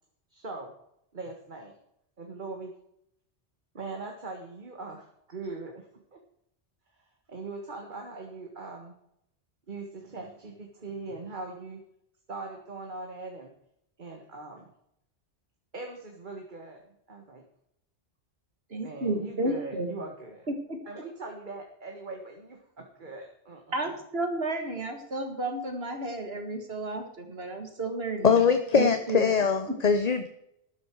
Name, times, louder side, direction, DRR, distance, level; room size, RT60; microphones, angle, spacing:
voice 1, 0.3-0.7 1.1-1.7 2.2-2.7 3.7-6.2 7.0-8.9 9.7-11.8 12.3-13.5 14.0-14.7 15.7-16.8 17.1-17.4 18.8-20.5 20.9-24.0, right 3 dB, 45° right, 2 dB, 1.8 m, -41 dB
voice 2, 18.7-19.9 20.7-20.8 23.7-28.4 28.8-29.3 29.7-29.8, right 2 dB, 65° right, 5 dB, 2.5 m, -32 dB
voice 3, 28.2-30.3, left 6 dB, 40° left, 8 dB, 0.9 m, -22 dB
13.0 x 12.0 x 4.7 m, 0.76 s
omnidirectional pair, 1.1 m